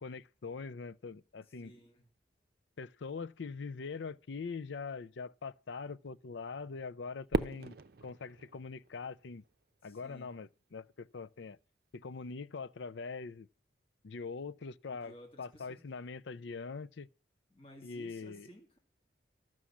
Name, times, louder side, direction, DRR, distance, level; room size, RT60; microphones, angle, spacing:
voice 1, 0.0-1.7 2.8-9.4 9.8-11.6 11.9-13.5 14.0-17.1 17.8-18.5, left 4 dB, 70° left, 0.5 m, -43 dB
voice 2, 1.6-2.0 9.8-10.3 15.0-15.8 17.5-18.8, equal, 30° left, 2.3 m, -55 dB
Fireworks, 7.3-9.6, right 3 dB, 50° right, 0.6 m, -37 dB
13.0 x 6.2 x 7.2 m
head